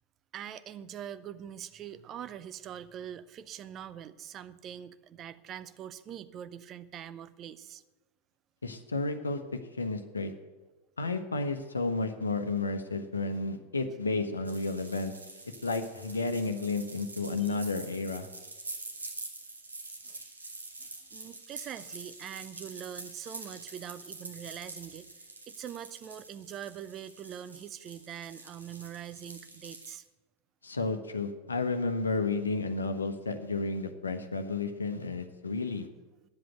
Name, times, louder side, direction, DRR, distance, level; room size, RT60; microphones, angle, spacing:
voice 1, 0.3-7.8 17.5-17.6 20.0-20.2 20.8-25.1 25.5-30.0, right 10 dB, 30° right, 13 dB, 0.6 m, -43 dB
voice 2, 8.6-9.4 9.8-10.3 11.0-15.1 15.6-18.3 30.6-35.9, left 3 dB, 75° left, 8 dB, 1.0 m, -32 dB
sound 1, 14.4-30.0, right 3 dB, 80° right, 1.6 m, -46 dB
10.5 x 7.8 x 7.8 m, 1.2 s
figure-of-eight pair, 90°, 0 cm